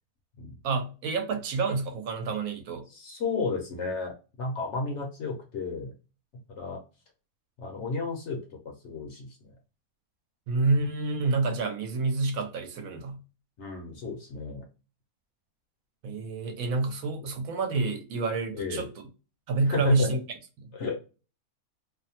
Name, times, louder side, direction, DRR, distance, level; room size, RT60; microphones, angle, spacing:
voice 1, 0.6-2.8 10.5-13.2 16.0-18.9 19.5-20.2, right 3 dB, 75° right, 1.0 m, -28 dB
voice 2, 2.9-5.9 6.5-6.8 7.6-8.4 8.6-9.4 13.6-14.6 18.5-18.9 19.7-20.1 20.7-21.0, left 3 dB, 60° left, 0.9 m, -32 dB
2.7 x 2.1 x 2.7 m
omnidirectional pair, 1.6 m